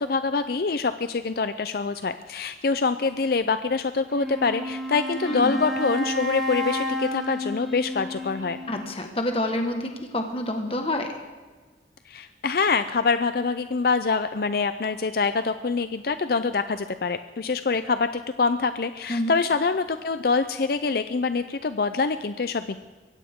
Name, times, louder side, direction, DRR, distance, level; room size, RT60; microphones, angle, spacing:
voice 1, 0.0-8.6 12.1-22.8, left 4 dB, 60° left, 11 dB, 0.5 m, -25 dB
Wind instrument woodwind instrument, 4.1-9.0, equal, ahead, 3.3 m, -31 dB
voice 2, 5.2-5.6 8.7-11.1 19.1-19.3, left 1 dB, 35° left, 4 dB, 1.5 m, -28 dB
23.0 x 16.5 x 3.7 m, 1.4 s
head